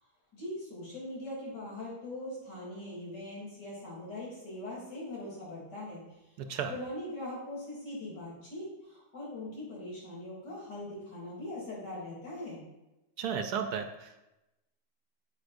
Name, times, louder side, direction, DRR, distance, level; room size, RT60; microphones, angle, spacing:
voice 1, 0.3-6.0 6.7-12.6, left 1 dB, 85° left, -5 dB, 3.7 m, -41 dB
voice 2, 13.2-14.3, right 7 dB, 70° right, 6 dB, 1.1 m, -34 dB
9.2 x 7.9 x 2.6 m, 0.96 s
omnidirectional pair, 1.8 m